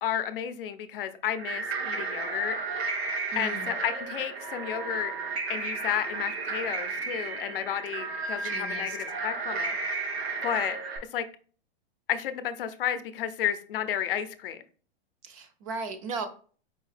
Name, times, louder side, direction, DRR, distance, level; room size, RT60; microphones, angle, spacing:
voice 1, 0.0-2.6 3.4-5.1 5.5-9.8 10.4-10.8 11.1-11.3 12.1-14.6, left 10 dB, 60° left, 11 dB, 0.5 m, -32 dB
sound 1, 1.4-11.0, right 4 dB, 85° right, 1.2 m, -33 dB
voice 2, 3.3-3.7 8.4-9.0 15.2-16.3, right 4 dB, 35° right, 8 dB, 0.4 m, -36 dB
4.6 x 2.7 x 3.2 m, 0.41 s
supercardioid pair, 165°, 31 cm